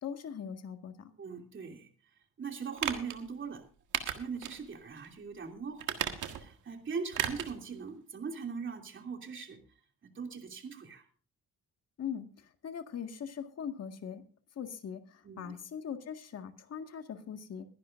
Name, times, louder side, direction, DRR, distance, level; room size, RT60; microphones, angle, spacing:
voice 1, 0.0-1.1 12.0-12.2 12.6-14.2 14.6-17.7, left 8 dB, 55° left, 6 dB, 1.8 m, -40 dB
voice 2, 1.2-1.9 2.4-3.7 4.1-9.6 10.0-11.0 15.2-15.6, right 5 dB, 40° right, 4 dB, 2.9 m, -40 dB
sound 1, 2.8-3.2 3.9-4.6 5.0-5.1 5.8-6.5 7.1-7.6 7.9-8.0, right 10 dB, 80° right, 1.7 m, -34 dB
22.5 x 11.0 x 2.6 m, 0.37 s
cardioid pair, 90°, 30 cm